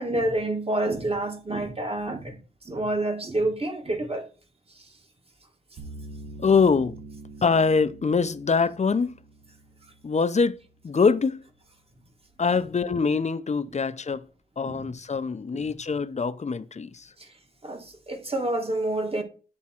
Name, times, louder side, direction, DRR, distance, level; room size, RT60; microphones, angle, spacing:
voice 1, 0.0-2.4 2.7-4.2 14.6-14.8 15.5-15.7 17.6-17.8 18.1-19.2, right 1 dB, 35° right, 1.6 m, -28 dB
sound 1, 5.8-10.9, right 2 dB, 65° right, 1.4 m, -44 dB
voice 2, 6.4-7.0 7.4-9.1 10.0-11.4 12.4-14.3 14.6-17.1, left 5 dB, 40° left, 0.6 m, -24 dB
9.5 x 3.6 x 4.3 m
cardioid pair, 60°, 18 cm